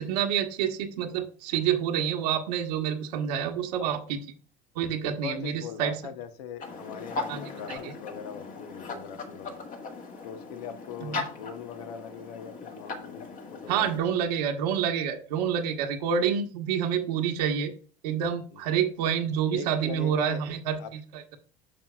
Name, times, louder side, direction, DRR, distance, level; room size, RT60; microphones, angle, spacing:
voice 1, 0.0-4.2 4.7-5.9 7.3-7.9 11.0-11.2 13.7-17.7 18.0-21.4, right 8 dB, 85° right, 2 dB, 1.2 m, -28 dB
voice 2, 5.0-9.7 10.2-14.2 18.5-18.6 19.5-20.4 20.8-20.9, left 7 dB, 85° left, 10 dB, 1.0 m, -41 dB
sound 1, 6.6-14.0, left 3 dB, 45° left, 1.9 m, -38 dB
8.8 x 6.2 x 2.3 m, 0.41 s
supercardioid pair, 95°, 20 cm